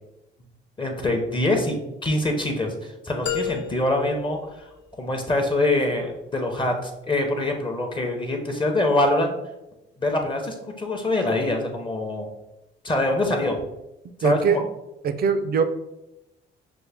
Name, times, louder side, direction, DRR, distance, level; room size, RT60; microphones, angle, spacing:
voice 1, 0.8-1.8 2.0-4.7 5.0-9.4 10.0-12.3 12.8-13.5 14.2-14.6, left 2 dB, 25° left, 3 dB, 0.7 m, -24 dB
sound 1, 3.3-5.3, left 7 dB, 60° left, 0.5 m, -33 dB
voice 2, 14.2-14.6 15.0-15.6, right 6 dB, 50° right, 10 dB, 0.5 m, -21 dB
6.0 x 2.1 x 3.4 m, 0.93 s
cardioid pair, 90°, 20 cm